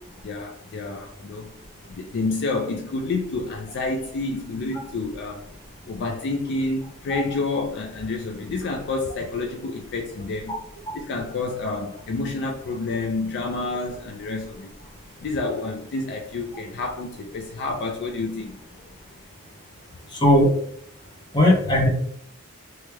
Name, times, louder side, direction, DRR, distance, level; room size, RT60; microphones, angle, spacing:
voice 1, 0.2-1.5 1.9-5.5 5.9-10.6 10.9-14.7 15.2-18.6, left 3 dB, 55° left, 1 dB, 0.4 m, -29 dB
voice 2, 21.3-21.9, left 1 dB, 20° left, -2 dB, 0.8 m, -17 dB
3.0 x 2.2 x 3.2 m, 0.66 s
head